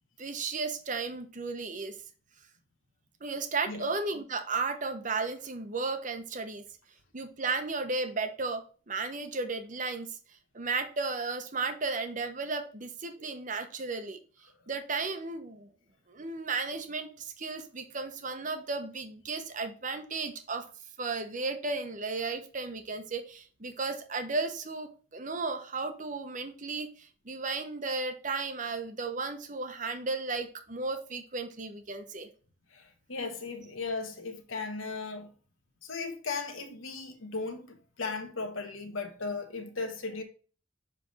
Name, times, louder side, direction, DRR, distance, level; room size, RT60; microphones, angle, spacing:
voice 1, 0.2-2.0 3.2-6.6 7.1-10.2 10.5-14.2 14.7-15.7 16.1-20.6 21.0-26.9 27.3-32.3, right 3 dB, 40° right, 0.8 m, -34 dB
voice 2, 32.7-35.3 35.8-40.2, left 4 dB, 90° left, 1.2 m, -37 dB
7.0 x 3.4 x 4.0 m
head